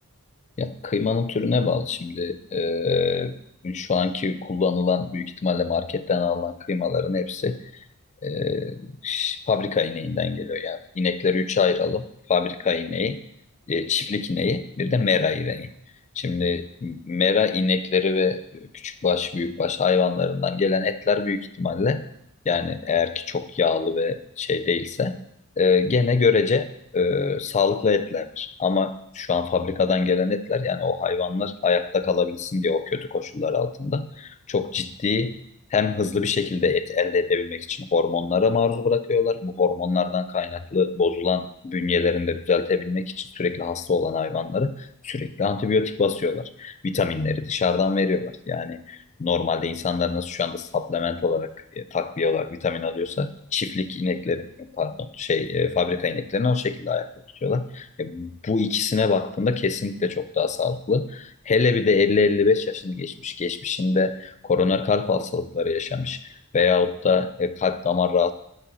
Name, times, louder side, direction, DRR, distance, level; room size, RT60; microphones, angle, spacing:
voice 1, 0.6-3.3 3.6-7.6 8.2-13.2 13.7-15.7 16.2-22.0 22.5-25.2 25.6-26.7 26.9-35.4 35.7-57.1 57.4-66.3 66.5-68.3, left 5 dB, 30° left, 12 dB, 0.4 m, -24 dB
9.7 x 3.3 x 6.1 m, 0.76 s
head